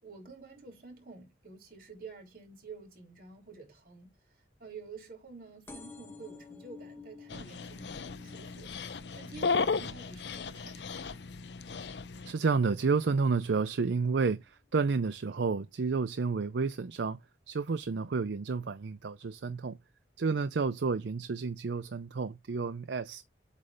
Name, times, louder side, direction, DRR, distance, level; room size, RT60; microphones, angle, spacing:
voice 1, 0.0-4.1 4.6-8.7 9.1-11.1, right 4 dB, 50° right, 3.4 m, -49 dB
sound 1, 5.7-12.9 13.4-13.8 14.7-14.8 15.0-15.1 15.3-15.4, left 4 dB, 15° left, 1.4 m, -53 dB
Dog, 7.3-12.3, left 4 dB, 75° left, 0.7 m, -35 dB
voice 2, 12.2-17.2 17.5-19.8 20.2-23.2, right 4 dB, 80° right, 0.5 m, -30 dB
8.3 x 3.2 x 5.0 m
head